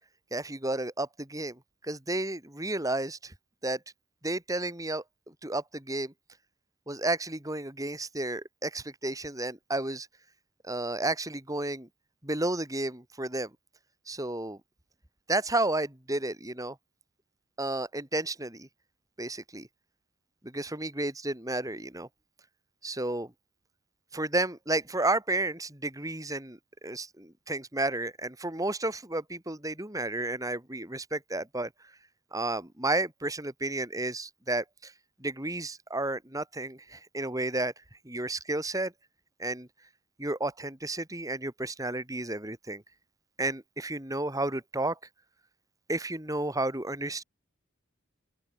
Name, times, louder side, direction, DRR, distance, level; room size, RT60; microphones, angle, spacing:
voice 1, 0.3-3.3 3.6-3.8 4.2-5.0 5.4-6.1 6.9-10.1 10.6-11.9 12.2-13.5 14.1-14.6 15.3-16.8 17.6-18.7 19.2-19.7 20.4-22.1 22.8-23.3 24.1-31.7 32.3-34.9 35.2-37.7 38.1-38.9 39.4-39.7 40.2-42.8 43.4-45.0 45.9-47.2, right 2 dB, 15° right, 3.5 m, -32 dB
open air
head